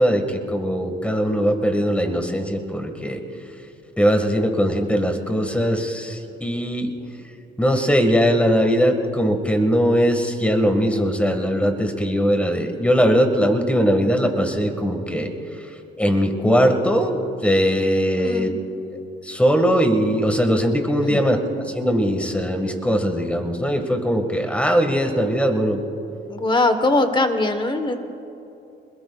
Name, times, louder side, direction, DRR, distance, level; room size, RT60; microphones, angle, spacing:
voice 1, 0.0-3.2 4.0-6.9 7.6-15.3 16.0-18.5 19.2-21.4 21.7-25.8, equal, 5° left, 5 dB, 1.7 m, -20 dB
voice 2, 18.2-18.5 21.1-21.2 26.3-28.0, left 2 dB, 25° left, 8 dB, 1.2 m, -21 dB
26.0 x 21.0 x 2.4 m, 2.7 s
cardioid pair, 90°, 20 cm